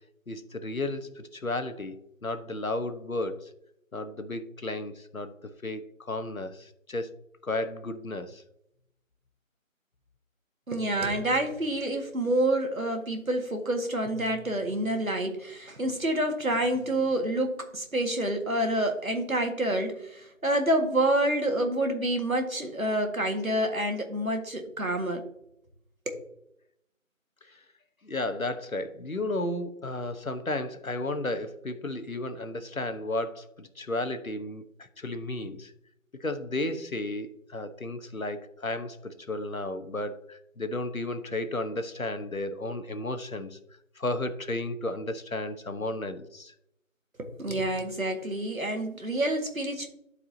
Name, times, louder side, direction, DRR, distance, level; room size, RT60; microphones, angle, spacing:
voice 1, 0.3-3.5 3.9-5.3 5.6-7.1 7.4-8.4 27.5-27.6 28.0-34.7 35.0-35.7 36.2-43.6 44.0-46.5, left 2 dB, 85° left, 10 dB, 1.1 m, -33 dB
voice 2, 10.7-25.2 26.1-26.2 47.2-49.9, right 1 dB, 85° right, 4 dB, 1.9 m, -28 dB
12.0 x 4.8 x 2.8 m, 0.77 s
figure-of-eight pair, 180°, 40 cm